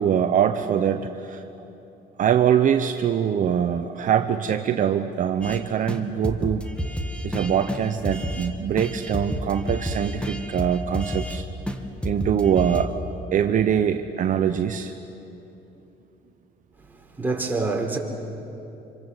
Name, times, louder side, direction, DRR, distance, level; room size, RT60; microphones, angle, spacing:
voice 1, 0.0-1.4 2.2-6.7 7.2-11.4 12.0-12.9 13.3-14.9, right 8 dB, 50° right, 0.9 m, -23 dB
sound 1, 5.4-5.6 5.9-6.0 6.2-8.5 8.8-11.4 11.7-11.8 12.0-12.8, equal, 5° left, 1.8 m, -30 dB
voice 2, 16.8-18.0, right 3 dB, 10° right, 4.0 m, -27 dB
26.5 x 26.0 x 8.1 m
cardioid pair, 110°, 17 cm